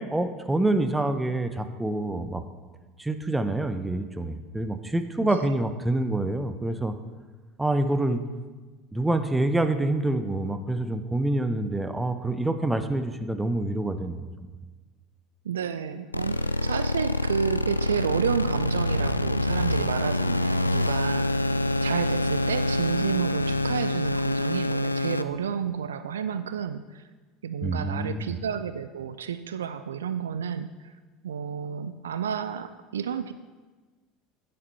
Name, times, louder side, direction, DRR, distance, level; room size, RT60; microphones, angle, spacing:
voice 1, 0.0-2.4 3.0-6.9 7.6-8.2 8.9-14.5 27.6-28.3, right 2 dB, 10° right, 9 dB, 0.8 m, -27 dB
voice 2, 5.2-5.5 15.4-27.0 27.4-30.9 31.2-33.3, right 8 dB, 70° right, 11 dB, 0.4 m, -31 dB
sound 1, 16.1-25.2, left 1 dB, 85° left, 0.3 m, -26 dB
9.9 x 7.7 x 5.7 m, 1.3 s
figure-of-eight pair, 70°, 0 cm